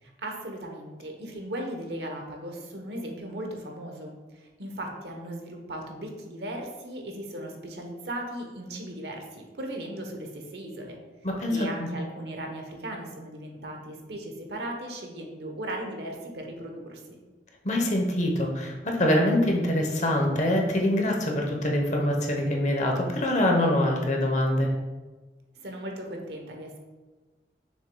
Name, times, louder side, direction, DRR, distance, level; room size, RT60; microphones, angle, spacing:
voice 1, 0.0-11.0 11.5-17.2 25.6-26.8, right 1 dB, 65° right, 2 dB, 1.0 m, -37 dB
voice 2, 11.2-11.9 17.6-24.7, left 1 dB, 40° left, 1 dB, 0.9 m, -24 dB
6.6 x 6.4 x 2.3 m, 1.3 s
head